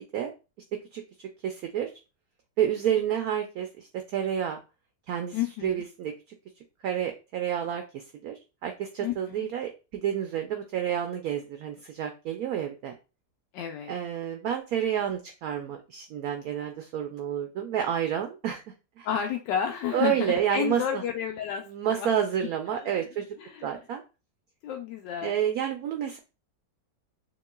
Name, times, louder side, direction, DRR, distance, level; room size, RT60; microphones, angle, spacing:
voice 1, 1.4-1.9 2.6-4.6 5.1-5.4 5.6-6.1 6.8-12.9 13.9-18.6 19.0-19.1 19.9-21.0 21.7-23.3 23.6-24.0 25.2-26.2, right 9 dB, 70° right, 5 dB, 0.9 m, -29 dB
voice 2, 5.3-5.8 9.0-9.5 13.5-13.9 19.0-22.1 22.7-23.1 23.4-23.8 24.6-25.4, left 9 dB, 85° left, 3 dB, 1.2 m, -31 dB
6.8 x 3.0 x 2.2 m, 0.30 s
omnidirectional pair, 1.9 m